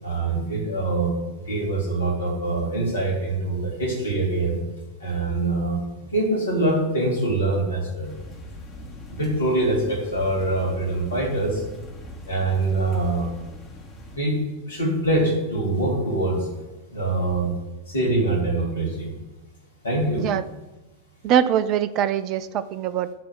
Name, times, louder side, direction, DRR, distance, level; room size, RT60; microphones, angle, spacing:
voice 1, 0.0-4.6 5.0-8.2 9.1-11.6 12.3-13.3 14.1-14.4 14.7-16.5 16.9-17.5 17.9-19.1 19.8-20.3, right 2 dB, 75° left, -2 dB, 3.4 m, -24 dB
sound 1, 8.0-14.2, equal, 25° left, 2.5 m, -41 dB
voice 2, 21.2-23.1, right 9 dB, 40° right, 14 dB, 0.4 m, -23 dB
10.5 x 4.1 x 7.0 m, 1.1 s
figure-of-eight pair, 90°, 0 cm